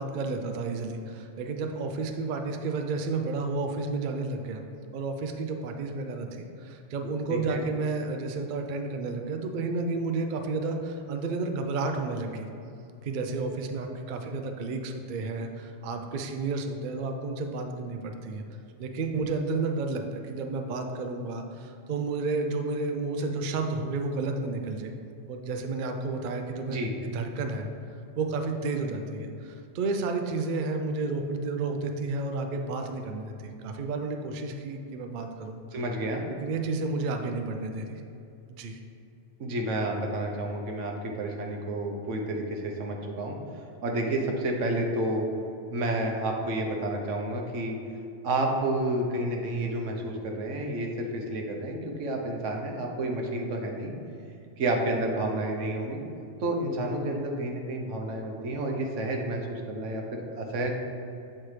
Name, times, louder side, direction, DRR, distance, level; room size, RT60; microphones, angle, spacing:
voice 1, 0.0-4.6 4.9-12.5 13.0-18.4 18.8-24.9 25.3-26.8 27.0-27.7 28.2-35.6 36.1-38.0 38.5-38.8, right 3 dB, 60° right, 5 dB, 0.5 m, -31 dB
voice 2, 7.3-7.6 26.7-26.9 35.7-36.2 39.4-43.4 43.8-45.3 45.7-47.8 48.2-53.9 54.6-56.0 56.4-60.7, right 1 dB, 85° right, 2 dB, 1.1 m, -30 dB
7.9 x 4.3 x 3.2 m, 2.6 s
omnidirectional pair, 1.2 m